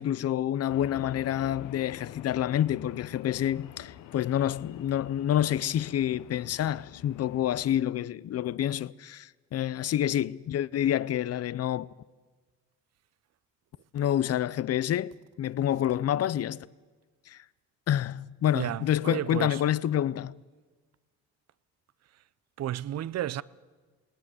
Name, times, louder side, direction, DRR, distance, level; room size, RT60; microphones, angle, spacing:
voice 1, 0.0-11.9 13.9-16.7 17.3-17.4 17.9-20.3, left 11 dB, 55° left, 0.6 m, -28 dB
sound 1, 0.7-7.8, left 11 dB, 85° left, 1.0 m, -47 dB
voice 2, 18.5-19.6 22.6-23.4, right 12 dB, 60° right, 0.6 m, -32 dB
19.0 x 18.0 x 7.7 m
cardioid pair, 90°, 30 cm